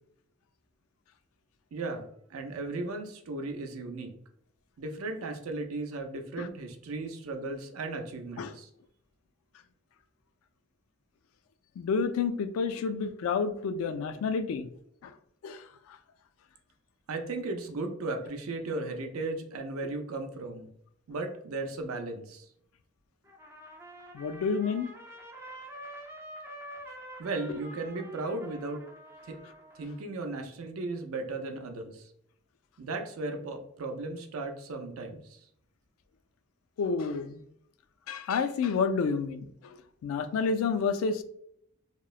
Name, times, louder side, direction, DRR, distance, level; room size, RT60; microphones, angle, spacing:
voice 1, 1.7-4.1 4.8-8.7 17.1-20.7 21.1-22.5 27.2-28.8 29.3-29.4 29.8-32.1 32.8-35.5, right 2 dB, 85° right, 5 dB, 0.5 m, -36 dB
voice 2, 11.8-14.7 15.0-15.1 15.4-15.6 24.1-24.9 27.5-27.6 36.8-37.4 38.1-39.5 40.0-41.2, left 5 dB, 75° left, 10 dB, 0.3 m, -29 dB
Trumpet, 23.2-30.0, equal, 10° right, 0.3 m, -47 dB
2.9 x 2.0 x 2.3 m, 0.70 s
head